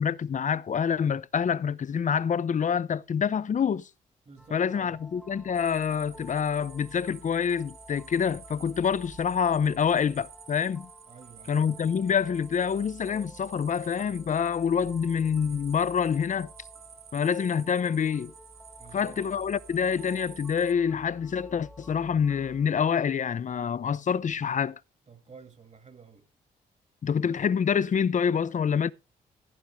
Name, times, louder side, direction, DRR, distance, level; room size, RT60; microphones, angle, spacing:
voice 1, 0.0-3.9 4.5-10.9 11.5-16.5 17.1-18.3 18.9-24.8 27.0-28.9, left 7 dB, 45° left, 0.7 m, -26 dB
voice 2, 4.3-5.0 11.1-11.6 14.8-15.0 18.8-19.3 25.1-26.3, right 5 dB, 40° right, 2.4 m, -50 dB
sound 1, 4.4-22.7, left 1 dB, ahead, 1.5 m, -51 dB
sound 2, 5.5-20.7, right 9 dB, 65° right, 1.0 m, -51 dB
15.5 x 8.5 x 3.6 m
supercardioid pair, 60°, 17 cm